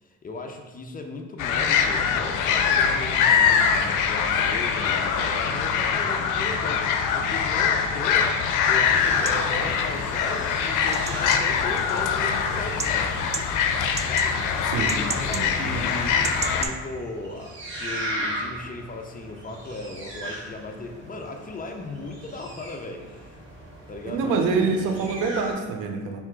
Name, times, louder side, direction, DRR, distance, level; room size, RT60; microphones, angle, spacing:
voice 1, 0.0-13.1 14.0-14.4 14.8-23.4 23.9-25.1, left 2 dB, 30° left, 4 dB, 0.5 m, -37 dB
sound 1, 1.4-16.7, left 6 dB, 90° left, 0.5 m, -23 dB
sound 2, 8.8-16.7, right 5 dB, 25° right, 0.3 m, -37 dB
sound 3, 8.9-25.5, right 1 dB, 40° right, 1.4 m, -39 dB
voice 2, 14.6-15.0 15.3-15.9 24.0-26.2, right 4 dB, 90° right, 4 dB, 0.7 m, -26 dB
3.5 x 2.9 x 4.7 m, 1.3 s
cardioid pair, 90°, 30 cm